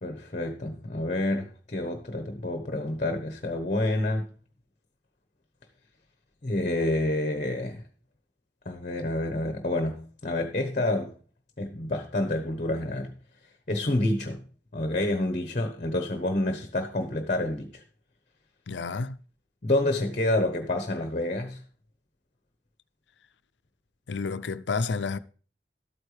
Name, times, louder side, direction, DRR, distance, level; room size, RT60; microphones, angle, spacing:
voice 1, 0.0-4.3 6.4-7.8 8.6-11.1 11.6-13.1 13.7-14.4 14.7-17.8 19.6-21.6, left 1 dB, 40° left, 1.1 m, -28 dB
voice 2, 18.7-19.2 24.1-25.2, left 4 dB, 80° left, 0.5 m, -30 dB
12.5 x 8.9 x 3.3 m
head